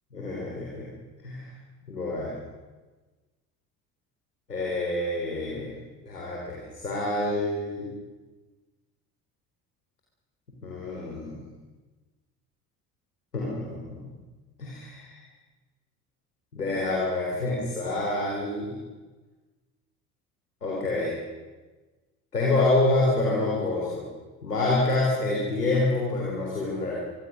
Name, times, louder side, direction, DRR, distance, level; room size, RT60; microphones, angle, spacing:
voice 1, 0.1-0.9 1.2-1.5 1.9-2.4 4.5-5.8 6.1-7.9 10.6-11.5 13.3-14.0 14.6-15.2 16.5-18.8 20.6-21.1 22.3-24.0 24.4-27.0, left 2 dB, 90° left, -4 dB, 4.0 m, -27 dB
25.0 x 24.0 x 6.5 m, 1.3 s
figure-of-eight pair, 50°, 46 cm